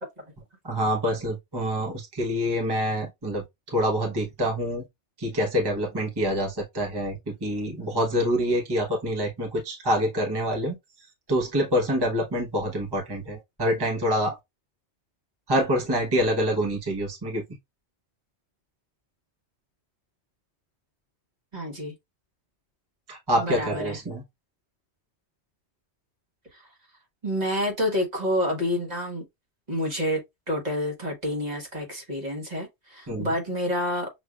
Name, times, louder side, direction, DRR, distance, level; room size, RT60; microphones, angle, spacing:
voice 1, 0.6-4.8 5.2-10.7 11.3-14.4 15.5-17.4 23.1-24.2 33.1-33.3, equal, 25° right, 1.0 m, -26 dB
voice 2, 21.5-21.9 23.4-24.0 26.5-26.7 27.2-29.2 29.7-30.2 30.5-34.1, left 1 dB, 40° right, 1.3 m, -28 dB
6.2 x 2.6 x 2.3 m
omnidirectional pair, 1.2 m